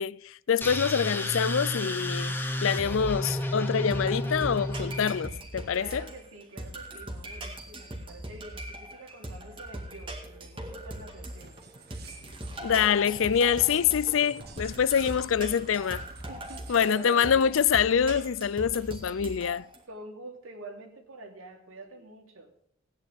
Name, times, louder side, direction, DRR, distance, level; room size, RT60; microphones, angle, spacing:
voice 1, 0.0-6.0 12.6-16.0 16.7-19.7, left 7 dB, 70° left, 0.4 m, -25 dB
sound 1, 0.6-5.4, left 1 dB, 10° left, 1.1 m, -31 dB
sound 2, 3.3-19.8, right 1 dB, 25° right, 2.0 m, -41 dB
voice 2, 5.7-11.6 16.3-17.5 19.9-22.5, right 2 dB, 80° right, 2.9 m, -46 dB
sound 3, 11.4-17.2, right 4 dB, 50° right, 1.3 m, -49 dB
16.5 x 10.0 x 3.5 m
head